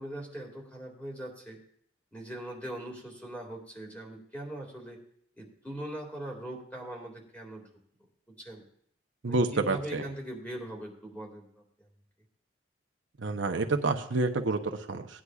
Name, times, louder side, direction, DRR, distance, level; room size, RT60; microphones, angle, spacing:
voice 1, 0.0-1.6 2.1-5.0 5.4-7.6 8.4-8.6 9.2-11.5 11.8-11.9, right 1 dB, 10° left, 0 dB, 2.0 m, -41 dB
voice 2, 9.2-10.0 13.2-14.6 14.9-15.1, right 3 dB, 75° right, 5 dB, 0.9 m, -28 dB
17.0 x 9.8 x 2.4 m, 0.66 s
head